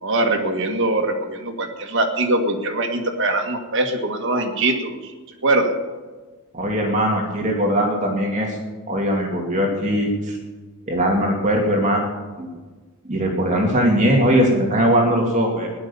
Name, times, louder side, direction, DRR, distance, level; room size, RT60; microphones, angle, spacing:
voice 1, 0.0-5.1 5.4-5.7, right 2 dB, 55° right, 3 dB, 2.0 m, -22 dB
voice 2, 6.5-8.6 8.9-10.4 10.9-12.1 12.4-12.5 13.0-15.7, equal, 35° right, 0 dB, 2.5 m, -20 dB
16.5 x 11.0 x 7.1 m, 1.3 s
head